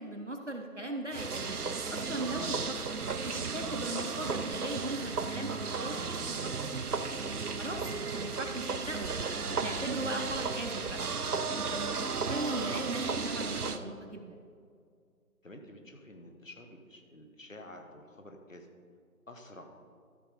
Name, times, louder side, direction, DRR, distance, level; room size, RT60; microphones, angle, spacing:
voice 1, 0.0-1.6 1.8-2.8 3.2-6.7 7.6-11.0 11.6-12.0 12.3-14.3, right 1 dB, 50° right, 2 dB, 0.8 m, -38 dB
sound 1, 1.1-13.8, right 4 dB, 80° right, 0.8 m, -34 dB
voice 2, 15.4-18.7 19.3-19.6, left 1 dB, 60° left, 4 dB, 1.3 m, -50 dB
13.0 x 5.3 x 4.9 m, 2.2 s
figure-of-eight pair, 175°, 45 cm